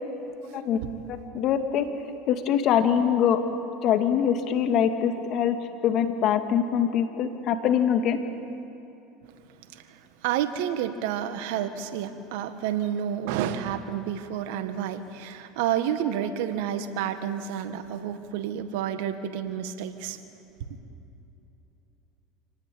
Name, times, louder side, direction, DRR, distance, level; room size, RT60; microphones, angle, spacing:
voice 1, 1.1-1.9 2.3-3.4 3.8-5.6 5.8-8.2, left 8 dB, 55° left, 6 dB, 2.3 m, -23 dB
voice 2, 9.7-20.2, right 9 dB, 75° right, 9 dB, 1.8 m, -30 dB
27.5 x 18.5 x 8.7 m, 2.9 s
hypercardioid pair, 95°, 0 cm